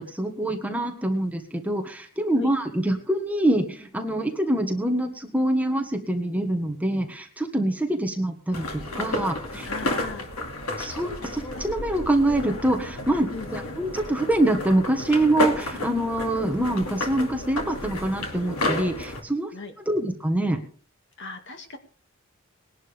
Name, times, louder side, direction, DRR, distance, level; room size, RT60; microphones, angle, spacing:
voice 1, 0.0-9.9 10.8-19.5 19.9-20.6, right 1 dB, 5° right, 4 dB, 1.5 m, -25 dB
sound 1, 8.5-19.2, left 1 dB, 90° left, 2.4 m, -31 dB
voice 2, 9.6-10.3 13.3-13.5 19.5-19.7 21.2-21.8, left 3 dB, 55° left, 5 dB, 2.3 m, -37 dB
20.5 x 11.0 x 3.5 m, 0.43 s
head